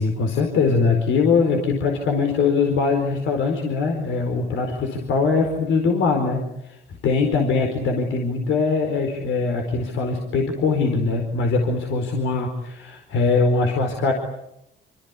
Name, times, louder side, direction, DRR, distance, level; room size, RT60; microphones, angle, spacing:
voice 1, 0.0-14.1, left 4 dB, 80° left, 3 dB, 4.6 m, -22 dB
27.0 x 25.5 x 8.4 m, 0.82 s
cardioid pair, 90°, 20 cm